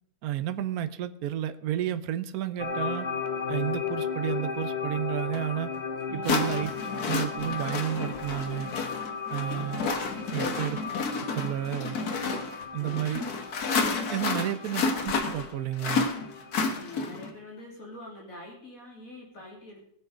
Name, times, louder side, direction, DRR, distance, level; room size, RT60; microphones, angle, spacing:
voice 1, 0.2-3.1 3.5-5.7 6.1-6.7 7.0-8.7 9.3-9.8 10.3-10.8 11.3-12.0 12.7-13.2 14.1-16.1, right 12 dB, 70° right, 12 dB, 1.2 m, -31 dB
sound 1, 2.6-16.6, left 5 dB, 30° left, 1.2 m, -36 dB
sound 2, 5.3-5.4 6.2-17.3, left 4 dB, 80° left, 1.9 m, -31 dB
voice 2, 9.5-9.9 10.3-10.8 12.8-13.2 14.3-14.6 16.6-19.8, left 1 dB, 60° left, -3 dB, 3.4 m, -45 dB
19.5 x 6.6 x 4.9 m, 0.69 s
omnidirectional pair, 1.6 m